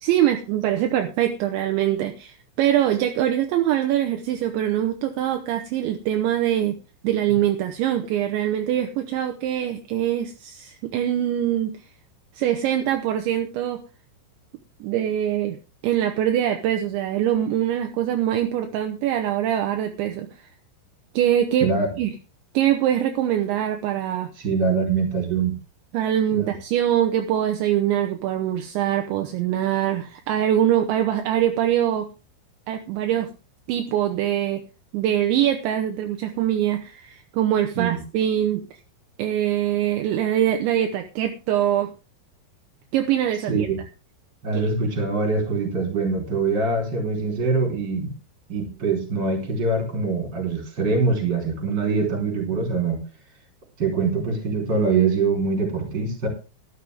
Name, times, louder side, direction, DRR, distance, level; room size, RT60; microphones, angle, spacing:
voice 1, 0.0-6.8 7.0-11.7 12.4-13.8 14.8-15.6 15.8-20.3 21.1-21.7 22.0-22.1 22.5-24.3 25.9-32.1 32.7-33.3 33.7-34.6 34.9-38.6 39.2-41.9 42.9-43.7 44.5-44.7, right 11 dB, 75° right, 5 dB, 3.0 m, -23 dB
voice 2, 24.4-25.5 26.3-26.5 37.7-38.0 43.5-43.8 44.4-48.1 48.5-53.0 53.8-56.3, right 4 dB, 25° right, 3 dB, 4.0 m, -23 dB
13.0 x 12.0 x 3.5 m, 0.32 s
omnidirectional pair, 5.9 m